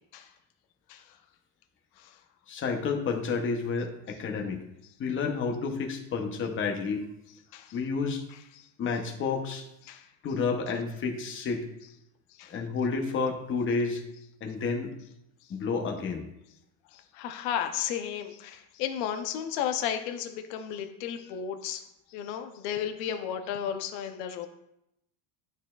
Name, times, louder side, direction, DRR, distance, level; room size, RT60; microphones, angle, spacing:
voice 1, 2.5-4.6 5.0-7.0 7.7-8.2 8.8-9.6 10.2-11.7 12.5-14.0 14.4-14.9 15.5-16.3, left 4 dB, 25° left, 2 dB, 0.8 m, -30 dB
voice 2, 16.9-21.8 22.1-24.5, left 9 dB, 75° left, 6 dB, 0.8 m, -34 dB
11.5 x 4.3 x 2.4 m, 0.81 s
cardioid pair, 160°, 50 cm